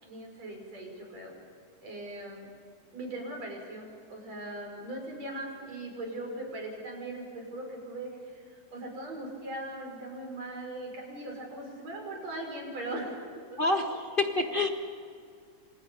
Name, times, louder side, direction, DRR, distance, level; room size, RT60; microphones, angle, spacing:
voice 1, 0.0-1.3 1.8-2.5 2.9-13.2, right 1 dB, 55° right, 1 dB, 6.9 m, -39 dB
voice 2, 13.6-14.7, left 2 dB, 35° left, 3 dB, 0.8 m, -27 dB
29.0 x 27.0 x 5.5 m, 2.2 s
omnidirectional pair, 3.5 m